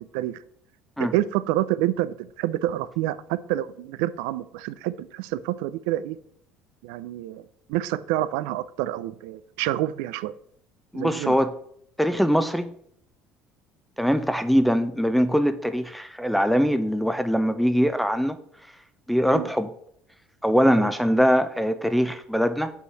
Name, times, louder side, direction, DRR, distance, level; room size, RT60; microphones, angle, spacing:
voice 1, 1.0-6.2 6.8-7.4 7.7-10.3 10.9-11.4 19.3-19.5 20.8-20.9, right 14 dB, 80° right, 0.4 m, -28 dB
voice 2, 10.9-11.5 12.0-12.7 14.0-18.4 19.1-19.7 20.4-22.7, equal, ahead, 0.6 m, -22 dB
6.3 x 5.5 x 5.7 m
supercardioid pair, 85°, 4 cm